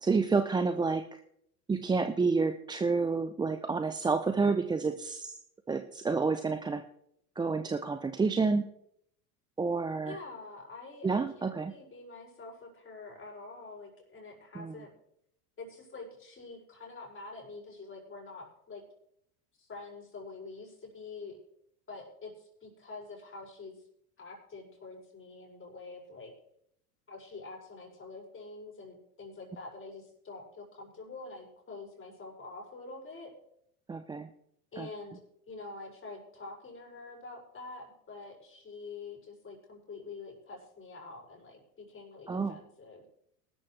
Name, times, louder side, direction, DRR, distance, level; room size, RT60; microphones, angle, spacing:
voice 1, 0.0-1.2 1.7-5.4 5.7-6.8 7.4-8.7 9.6-10.2 11.0-11.7 14.5-14.7 33.9-34.3 34.8-34.9 42.3-42.6, right 4 dB, 10° right, 9 dB, 0.5 m, -29 dB
voice 2, 10.0-14.9 15.6-18.8 19.6-21.4 21.9-23.8 24.2-26.3 27.1-33.3 34.7-35.2 35.5-43.0, left 3 dB, 25° left, -1 dB, 5.8 m, -46 dB
18.0 x 12.5 x 3.3 m, 0.73 s
hypercardioid pair, 95°, 48 cm